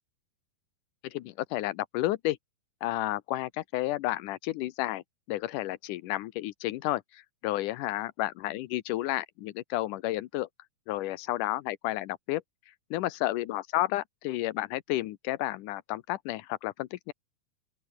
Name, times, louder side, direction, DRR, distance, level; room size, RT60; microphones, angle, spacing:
voice 1, 1.0-2.4 2.8-5.0 5.3-10.5 10.9-12.4 12.9-17.1, left 16 dB, 90° left, 1.8 m, -31 dB
open air
omnidirectional pair, 4.8 m